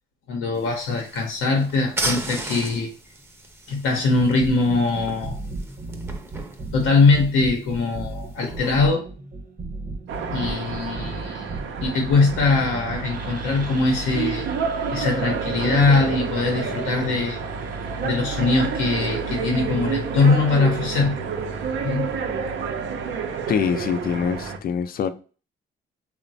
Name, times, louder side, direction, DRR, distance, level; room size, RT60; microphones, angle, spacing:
voice 1, 0.3-2.9 3.7-5.4 6.7-9.0 10.3-11.5 11.8-14.5 14.9-17.4 18.0-21.2 21.8-22.1, left 3 dB, 90° left, 0.7 m, -21 dB
sound 1, 0.5-8.8, right 1 dB, 10° right, 0.6 m, -35 dB
sound 2, 4.2-21.0, right 3 dB, 45° right, 0.9 m, -38 dB
sound 3, 10.1-24.6, right 5 dB, 75° right, 0.5 m, -29 dB
voice 2, 23.5-25.1, left 7 dB, 50° left, 0.4 m, -24 dB
3.0 x 2.1 x 2.6 m
cardioid pair, 90°, 20 cm